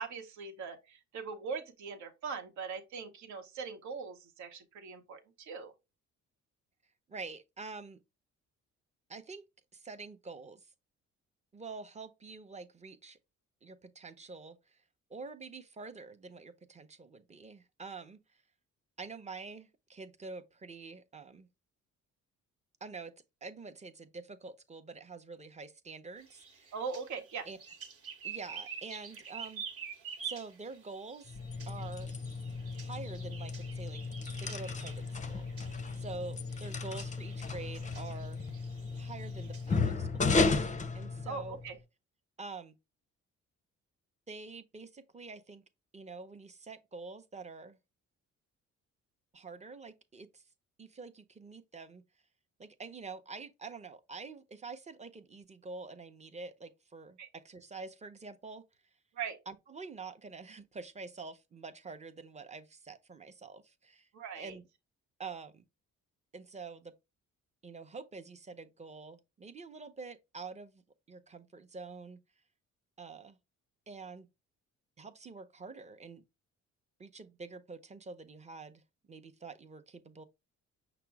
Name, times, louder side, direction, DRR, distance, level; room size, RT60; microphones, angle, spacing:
voice 1, 0.0-5.7 26.7-27.5 41.3-41.8 57.2-57.3 59.1-59.4 64.1-64.6, right 5 dB, 70° right, 1.0 m, -41 dB
voice 2, 7.1-8.0 9.1-9.5 9.7-10.7 11.5-13.2 13.6-14.8 15.1-18.2 19.0-21.5 22.8-23.1 23.4-26.8 27.5-27.6 28.2-29.6 30.2-31.4 31.7-32.1 32.8-34.0 34.4-38.4 39.0-41.6 42.4-42.8 44.3-45.6 45.9-47.8 49.3-50.4 50.8-52.0 52.6-58.6 59.5-64.1 64.3-64.6 65.2-65.6 66.3-66.9 67.6-70.8 71.1-72.2 73.0-73.4 73.9-74.3 75.0-76.2 77.0-78.8 79.1-80.2, right 4 dB, 20° right, 0.7 m, -46 dB
sound 1, 26.2-39.8, right 7 dB, 50° right, 1.2 m, -48 dB
sound 2, 31.3-41.7, left 4 dB, 25° left, 0.5 m, -34 dB
5.9 x 2.0 x 4.5 m
cardioid pair, 90°, 30 cm